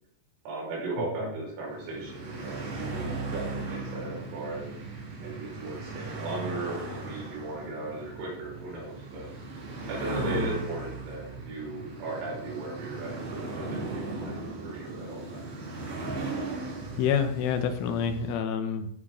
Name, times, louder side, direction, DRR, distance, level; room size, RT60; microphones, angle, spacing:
voice 1, 0.5-4.8 5.2-9.3 9.9-15.4, right 2 dB, 85° right, -3 dB, 8.0 m, -37 dB
sound 1, 1.6-18.4, right 3 dB, 60° right, 5.6 m, -37 dB
voice 2, 10.2-10.6 16.9-18.9, left 7 dB, 75° left, 6 dB, 3.3 m, -28 dB
16.5 x 8.7 x 3.8 m, 0.69 s
omnidirectional pair, 6.0 m